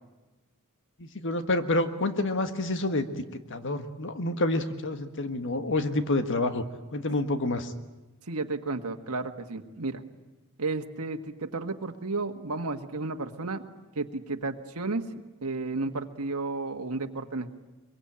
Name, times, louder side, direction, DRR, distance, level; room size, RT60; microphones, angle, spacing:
voice 1, 1.0-3.1 3.5-6.6 6.9-7.7, left 2 dB, 60° left, 8 dB, 1.5 m, -28 dB
voice 2, 8.2-10.0 10.6-13.6 13.9-15.0 15.4-17.5, right 3 dB, 75° right, 5 dB, 1.6 m, -32 dB
24.0 x 23.0 x 8.8 m, 1.1 s
head